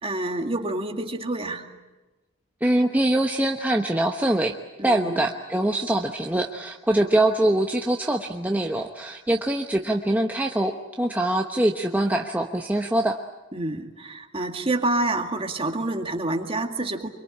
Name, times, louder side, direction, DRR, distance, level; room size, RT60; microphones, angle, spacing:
voice 1, 0.0-1.6 4.8-5.2 13.5-17.1, right 2 dB, 30° right, 4 dB, 2.2 m, -28 dB
voice 2, 2.6-4.6 4.8-13.2, right 1 dB, 10° right, 2 dB, 1.1 m, -23 dB
25.5 x 24.0 x 8.7 m, 1.1 s
head